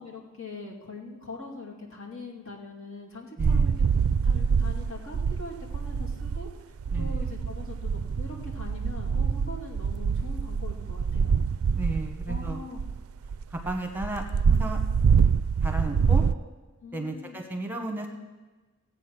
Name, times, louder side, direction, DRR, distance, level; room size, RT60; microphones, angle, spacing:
voice 1, 0.0-3.8 4.2-6.5 6.9-11.4 12.3-12.8 16.8-17.4, left 3 dB, 65° left, -1 dB, 2.4 m, -42 dB
voice 2, 3.3-3.7 6.9-7.2 11.7-12.6 13.5-14.8 15.6-16.2 16.9-18.1, right 2 dB, 10° right, 3 dB, 1.1 m, -34 dB
sound 1, 3.4-6.5 6.8-16.3, right 6 dB, 65° right, 0.3 m, -25 dB
16.5 x 8.2 x 6.0 m, 1.3 s
head